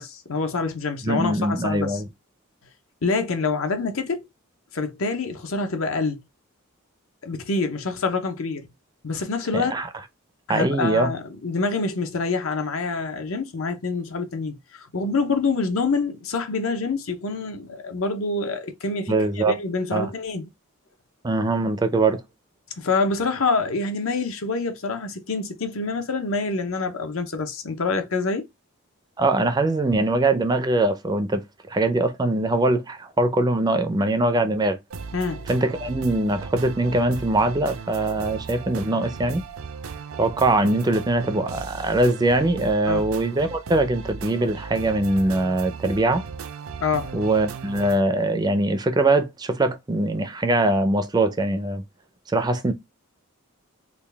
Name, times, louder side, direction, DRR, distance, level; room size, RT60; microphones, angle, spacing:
voice 1, 0.0-2.0 3.0-4.3 4.7-6.2 7.2-8.7 9.0-9.8 10.5-20.5 22.8-28.5 35.1-35.5 42.9-43.1 46.8-47.1, left 3 dB, 75° left, 0.8 m, -26 dB
voice 2, 1.0-2.1 9.5-9.9 10.5-11.1 19.1-19.6 19.9-20.1 21.2-22.2 29.2-34.8 35.5-39.4 40.2-46.2 47.1-51.8 52.3-52.7, right 2 dB, 20° right, 0.4 m, -22 dB
sound 1, 34.9-48.0, right 5 dB, 75° right, 0.5 m, -37 dB
3.8 x 2.3 x 3.3 m
head